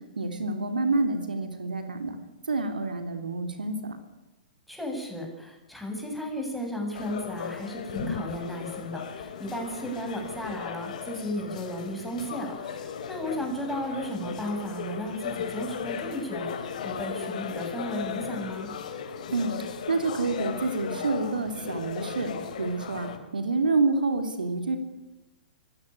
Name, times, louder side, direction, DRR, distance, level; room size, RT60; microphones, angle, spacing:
voice 1, 0.2-2.2 2.5-4.0 19.3-19.6 19.9-24.8, right 3 dB, 75° right, 7 dB, 3.1 m, -28 dB
voice 2, 4.7-18.7, equal, ahead, 0 dB, 7.7 m, -34 dB
sound 1, 6.9-23.2, left 7 dB, 60° left, 3.7 m, -36 dB
25.5 x 16.5 x 10.0 m, 1.1 s
figure-of-eight pair, 110°, 5 cm